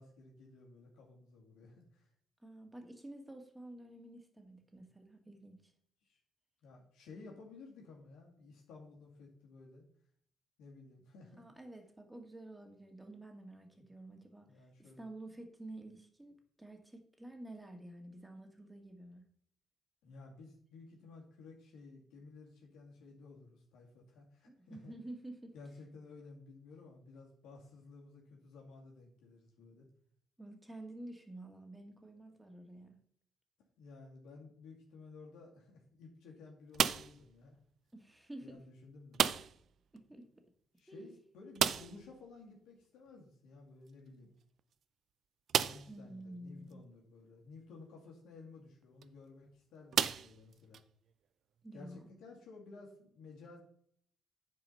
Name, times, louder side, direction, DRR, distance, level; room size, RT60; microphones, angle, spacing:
voice 1, 0.0-2.1 6.1-6.2 6.6-9.8 10.6-11.4 14.5-15.1 20.0-24.9 25.5-29.9 33.8-37.6 38.4-39.2 40.8-44.3 45.6-50.8 51.7-53.6, left 3 dB, 90° left, -1 dB, 2.3 m, -55 dB
voice 2, 2.4-5.7 11.4-14.5 14.8-19.3 24.5-25.5 30.4-33.0 37.9-38.6 39.9-40.3 40.9-41.1 45.9-46.8 51.6-52.1, right 1 dB, 10° right, 4 dB, 2.1 m, -50 dB
sound 1, 36.7-37.3 39.1-39.7 40.0-40.1 40.4-40.5 41.5-42.1 43.9-44.0 44.6-44.7 45.5-46.0 46.7-46.8 48.8-49.0 49.9-50.8, right 8 dB, 65° right, 0.5 m, -32 dB
9.7 x 4.8 x 5.8 m, 0.63 s
cardioid pair, 90°, 0 cm